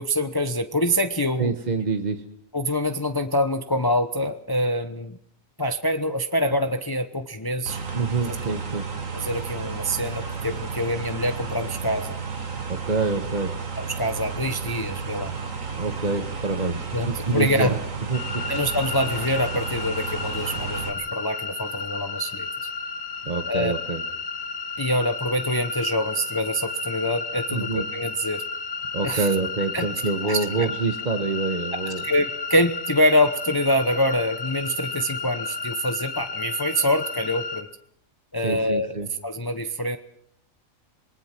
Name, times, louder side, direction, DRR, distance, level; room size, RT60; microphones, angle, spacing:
voice 1, 0.0-1.5 2.5-5.2 5.6-7.8 8.4-8.5 9.1-12.1 13.8-15.3 16.9-17.7 18.5-22.7 23.4-23.7 24.8-28.4 29.0-29.3 29.7-29.9 30.2-30.4 31.9-37.7 38.3-39.0 39.2-40.0, equal, 20° left, 8 dB, 0.9 m, -25 dB
voice 2, 1.4-2.3 7.9-8.9 12.7-13.6 15.7-17.8 18.1-18.4 23.2-24.0 27.5-27.8 28.9-32.0 38.4-39.1, right 4 dB, 35° right, 5 dB, 1.4 m, -26 dB
sound 1, 7.7-20.9, right 5 dB, 75° right, 2.3 m, -32 dB
sound 2, 18.1-37.6, left 4 dB, 80° left, 2.0 m, -33 dB
27.5 x 20.5 x 6.0 m, 0.70 s
omnidirectional pair, 1.4 m